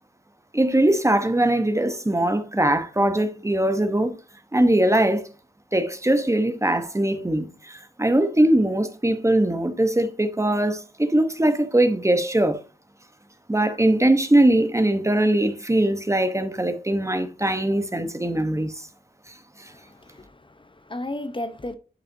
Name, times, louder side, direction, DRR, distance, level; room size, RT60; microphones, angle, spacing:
voice 1, 0.5-4.1 4.5-5.3 5.7-12.6 13.5-18.9 19.6-19.7, right 1 dB, 20° right, 1.0 m, -21 dB
voice 2, 19.7-21.8, left 1 dB, 30° left, 0.8 m, -34 dB
11.0 x 5.7 x 2.7 m
wide cardioid pair, 80°, 17 cm